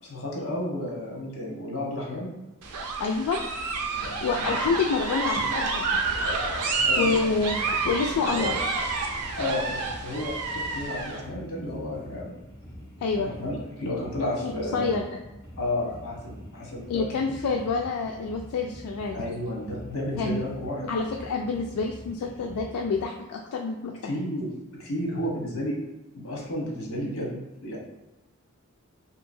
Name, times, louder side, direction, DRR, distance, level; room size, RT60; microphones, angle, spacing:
voice 1, 0.0-2.3 4.3-4.5 6.8-7.2 8.3-8.5 9.3-12.3 13.2-15.0 15.6-17.2 19.1-20.9 24.0-25.8 26.1-27.8, left 1 dB, 70° left, -3 dB, 1.0 m, -32 dB
sound 1, 2.6-11.2, right 3 dB, 90° right, 0.5 m, -29 dB
voice 2, 3.0-3.4 4.2-6.0 7.0-7.6 7.9-8.6 13.0-13.3 14.4-15.0 16.9-19.2 20.2-20.4 20.9-24.1, left 4 dB, 90° left, 1 dB, 0.3 m, -27 dB
sound 2, 5.9-23.0, equal, 20° left, 1.1 m, -45 dB
2.8 x 2.7 x 2.6 m, 1.0 s
head